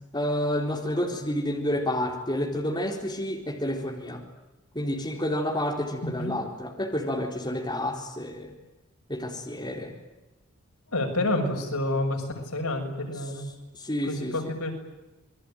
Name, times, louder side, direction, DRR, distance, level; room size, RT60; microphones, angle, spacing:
voice 1, 0.1-4.2 4.7-8.5 9.1-9.9 13.7-14.3, left 1 dB, 20° left, 1 dB, 4.0 m, -29 dB
voice 2, 10.9-13.4 14.0-14.7, left 1 dB, 85° left, 2 dB, 6.9 m, -29 dB
28.0 x 21.5 x 9.1 m, 1.1 s
head